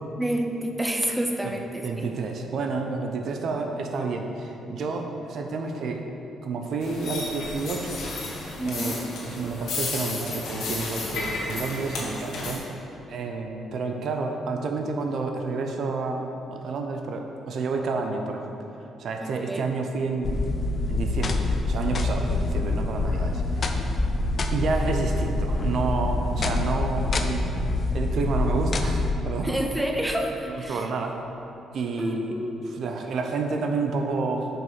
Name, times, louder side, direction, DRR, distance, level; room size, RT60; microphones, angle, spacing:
voice 1, 0.2-2.1 8.6-9.0 19.2-19.7 23.3-23.4 29.4-30.8 32.0-32.6, right 1 dB, 10° right, 2 dB, 0.6 m, -29 dB
voice 2, 1.8-6.0 6.4-8.1 8.6-12.8 13.1-18.6 19.0-20.4 20.9-23.7 24.5-27.4 27.9-29.5 30.7-31.2 31.7-32.4 32.7-34.5, right 4 dB, 65° right, 3 dB, 0.6 m, -29 dB
sound 1, 6.8-12.6, left 3 dB, 75° left, 1.3 m, -33 dB
sound 2, 20.2-29.1, left 2 dB, 45° left, 0.5 m, -26 dB
5.2 x 4.8 x 5.6 m, 2.9 s
cardioid pair, 90°, 0 cm